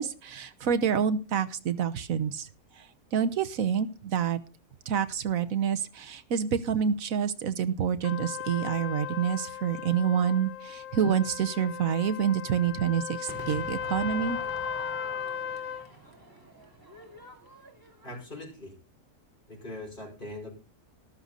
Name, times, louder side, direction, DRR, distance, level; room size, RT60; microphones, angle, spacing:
voice 1, 0.0-2.5 3.1-4.4 4.9-14.4, right 8 dB, 65° right, 12 dB, 1.4 m, -27 dB
Trumpet, 8.0-15.9, left 9 dB, 70° left, 1.4 m, -37 dB
Crowd / Fireworks, 13.3-18.5, right 1 dB, 15° right, 2.4 m, -45 dB
voice 2, 18.0-18.7 19.5-20.5, left 1 dB, 30° left, -1 dB, 5.7 m, -41 dB
13.5 x 11.5 x 4.0 m, 0.31 s
omnidirectional pair, 1.6 m